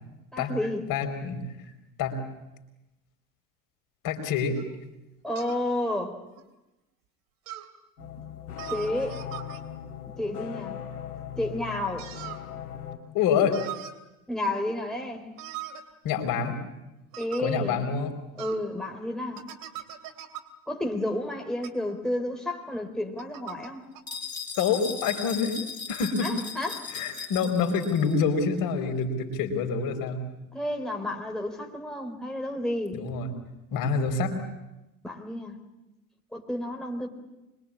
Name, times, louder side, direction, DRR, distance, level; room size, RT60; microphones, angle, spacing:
voice 1, 0.3-0.8 5.2-6.2 8.7-9.2 10.2-10.8 11.4-12.1 14.3-15.3 17.2-17.8 18.4-19.5 20.7-23.8 26.2-26.9 27.2-27.3 30.5-33.0 35.0-35.6 36.3-37.1, left 1 dB, ahead, 1 dB, 3.8 m, -31 dB
voice 2, 0.9-1.4 2.0-2.2 4.0-4.6 13.1-13.6 16.0-16.6 17.4-18.1 24.6-25.6 25.9-26.3 26.9-30.2 32.9-33.3 33.7-34.4, left 5 dB, 50° left, 4 dB, 4.5 m, -26 dB
sound 1, 4.6-4.7 5.4-5.6 6.3-6.4 7.5-7.7 8.6-9.6 12.0-12.4 13.5-13.9 15.4-15.8 17.1-17.4 18.4-18.6 19.3-20.4 21.6-21.7 23.2-23.7 23.9-24.0, right 12 dB, 50° right, 3.0 m, -40 dB
sound 2, 8.0-13.0, left 9 dB, 75° left, 2.7 m, -39 dB
sound 3, 24.1-28.2, left 5 dB, 20° left, 4.8 m, -38 dB
25.5 x 22.5 x 8.7 m, 1.0 s
figure-of-eight pair, 70°, 44 cm